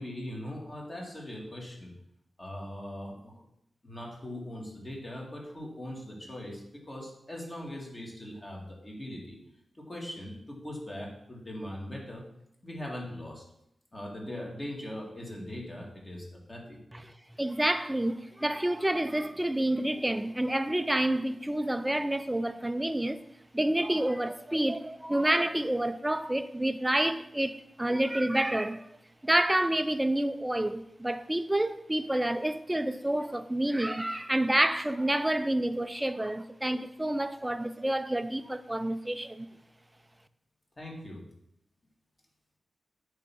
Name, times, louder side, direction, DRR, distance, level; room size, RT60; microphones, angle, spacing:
voice 1, 0.0-1.9 2.4-3.5 3.8-9.4 9.8-12.2 12.6-13.4 13.9-16.8 40.8-41.2, left 1 dB, 25° left, 2.1 m, -40 dB
voice 2, 16.9-23.2 23.5-28.9 29.2-39.5, right 1 dB, 10° right, 0.4 m, -29 dB
8.8 x 3.5 x 6.0 m
wide cardioid pair, 90°, 0 cm